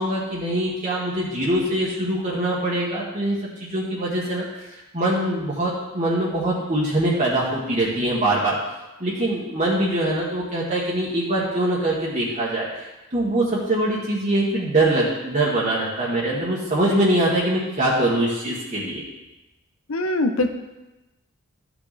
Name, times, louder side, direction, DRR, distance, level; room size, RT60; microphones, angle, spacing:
voice 1, 0.0-4.7 4.9-8.6 9.0-19.0, right 1 dB, 35° right, -6 dB, 1.5 m, -23 dB
voice 2, 19.9-20.5, left 2 dB, 85° left, 7 dB, 0.9 m, -22 dB
13.0 x 6.1 x 4.2 m, 1.0 s
head